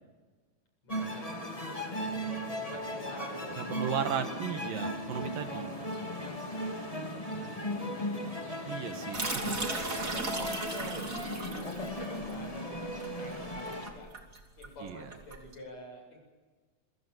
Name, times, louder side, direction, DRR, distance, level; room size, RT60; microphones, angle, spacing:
voice 1, 0.8-4.3 6.7-8.7 9.8-11.7 12.1-14.1 14.6-16.2, left 1 dB, 50° left, 2 dB, 9.2 m, -49 dB
sound 1, 0.9-13.9, equal, 10° left, 3.0 m, -37 dB
voice 2, 3.6-5.7 8.6-9.6 14.8-15.1, right 8 dB, 75° right, 7 dB, 3.3 m, -35 dB
Male singing, 4.2-9.5, right 2 dB, 40° right, 5.7 m, -51 dB
sound 2, 9.1-15.5, right 3 dB, 25° right, 2.8 m, -37 dB
28.0 x 24.0 x 7.5 m, 1.4 s
omnidirectional pair, 4.0 m